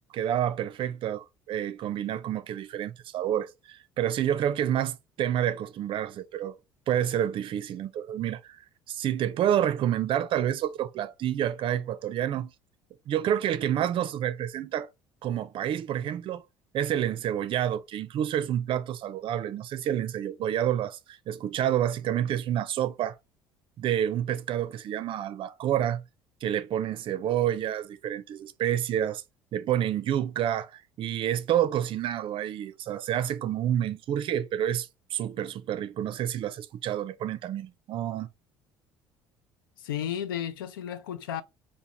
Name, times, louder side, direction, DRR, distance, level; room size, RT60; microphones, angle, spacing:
voice 1, 0.1-6.6 6.9-8.6 8.9-12.5 13.1-14.9 15.2-16.4 16.7-23.2 23.8-26.0 26.4-29.2 29.5-38.3, right 10 dB, 50° right, 0.5 m, -29 dB
voice 2, 39.8-41.4, left 10 dB, 85° left, 0.4 m, -33 dB
3.7 x 2.5 x 2.9 m
hypercardioid pair, 65°, 11 cm